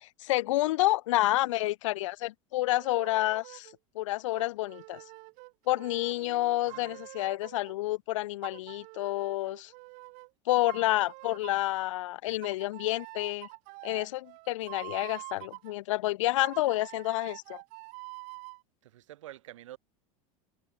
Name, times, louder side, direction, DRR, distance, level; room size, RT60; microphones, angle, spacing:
voice 1, 0.0-3.7 4.0-5.0 5.7-9.7 10.5-13.5 13.8-17.6, left 17 dB, 85° left, 0.6 m, -29 dB
sound 1, 2.7-3.8 4.3-7.8 8.4-10.3 10.7-11.7 12.4-15.7 16.4-18.6, right 29 dB, 60° right, 2.1 m, -46 dB
voice 2, 6.7-7.0 18.8-19.8, right 14 dB, 90° right, 2.8 m, -48 dB
supercardioid pair, 120°, 16 cm